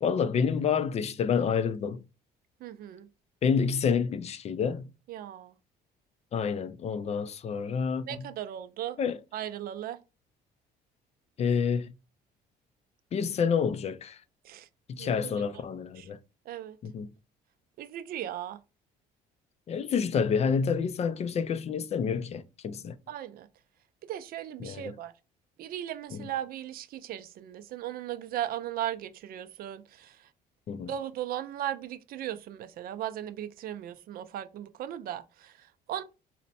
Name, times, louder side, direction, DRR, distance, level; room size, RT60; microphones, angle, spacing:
voice 1, 0.0-2.0 3.4-4.9 6.3-8.2 9.0-9.2 11.4-11.9 13.1-14.2 14.9-16.2 16.8-17.1 19.7-23.0 24.6-24.9 26.1-26.2 30.7-30.9, left 6 dB, 40° left, 0.4 m, -28 dB
voice 2, 2.6-3.1 5.1-5.5 8.1-9.0 9.3-10.0 14.4-14.7 15.0-15.6 16.0-16.1 16.5-16.8 17.8-18.6 23.1-23.5 24.0-25.1 25.6-30.3 30.9-36.0, right 11 dB, 60° right, 0.4 m, -37 dB
4.1 x 2.1 x 4.1 m
cardioid pair, 110°, 17 cm